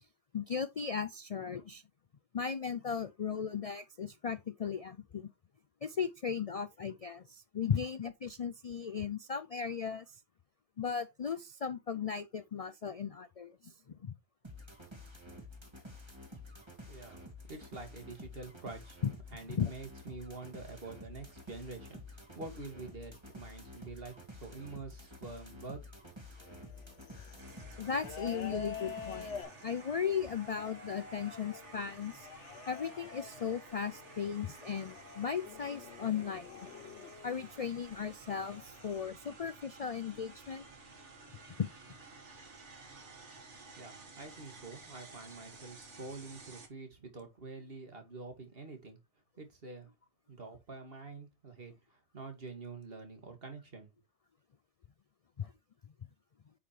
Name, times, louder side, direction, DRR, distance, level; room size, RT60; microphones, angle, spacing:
voice 1, 0.3-1.8 2.3-5.3 5.8-10.1 10.8-13.7 14.0-14.2 19.0-19.1 19.5-19.7 27.8-29.3 29.6-32.3 32.7-36.5 37.2-40.7 41.6-41.7 55.4-55.5, left 7 dB, 50° left, 0.4 m, -36 dB
sound 1, 14.4-29.4, left 1 dB, 25° right, 2.4 m, -50 dB
voice 2, 16.9-17.2 17.5-19.0 19.3-25.8 43.8-49.0 49.4-49.9 50.3-51.7 52.1-53.9, right 3 dB, 55° right, 2.3 m, -47 dB
sound 2, 26.4-37.6 38.4-39.1, left 6 dB, 80° left, 1.2 m, -48 dB
sound 3, 27.4-46.7, right 3 dB, 85° right, 2.1 m, -53 dB
8.3 x 5.8 x 3.2 m
omnidirectional pair, 1.2 m